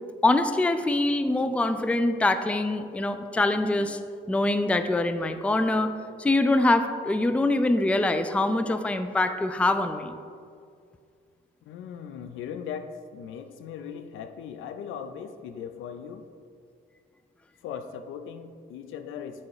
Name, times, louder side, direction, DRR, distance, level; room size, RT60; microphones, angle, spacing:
voice 1, 0.2-4.0 4.3-5.9 6.2-10.2, left 2 dB, 5° left, 9 dB, 0.3 m, -24 dB
voice 2, 11.7-16.3 17.6-19.5, left 7 dB, 80° left, 9 dB, 0.5 m, -38 dB
7.1 x 4.3 x 4.8 m, 2.3 s
cardioid pair, 90°, 20 cm